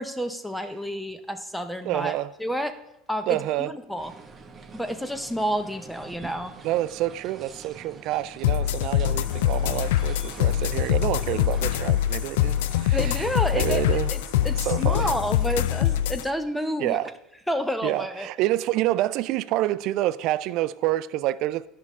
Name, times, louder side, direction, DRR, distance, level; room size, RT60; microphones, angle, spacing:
voice 1, 0.0-2.8 3.1-4.1 4.7-6.5 12.9-17.0 17.5-18.3, equal, ahead, 0.6 m, -30 dB
voice 2, 1.8-2.3 3.3-3.7 6.6-13.2 13.5-14.1 14.6-15.1 16.8-17.1 17.8-21.7, right 15 dB, 60° right, 0.3 m, -27 dB
sound 1, 4.0-11.7, right 4 dB, 25° right, 1.0 m, -46 dB
sound 2, 8.4-16.2, left 12 dB, 90° left, 0.3 m, -24 dB
sound 3, 9.2-16.1, left 2 dB, 55° left, 2.9 m, -47 dB
11.0 x 5.6 x 3.6 m
supercardioid pair, 115°, 0 cm